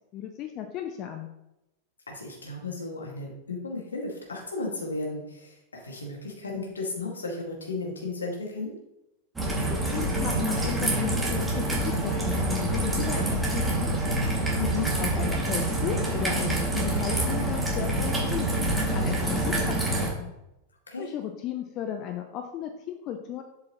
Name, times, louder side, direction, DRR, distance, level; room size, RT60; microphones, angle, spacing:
voice 1, 0.1-1.3 9.6-14.3 15.0-20.3 21.0-23.4, left 10 dB, 35° left, 6 dB, 0.6 m, -35 dB
voice 2, 2.1-5.6 5.8-8.7 14.6-14.9 20.9-21.1, left 3 dB, 75° left, -1 dB, 1.9 m, -34 dB
Raindrop / Trickle dribble, 9.4-20.1, right 1 dB, 10° right, 2.2 m, -26 dB
7.6 x 7.3 x 3.0 m, 0.90 s
figure-of-eight pair, 90°, 0 cm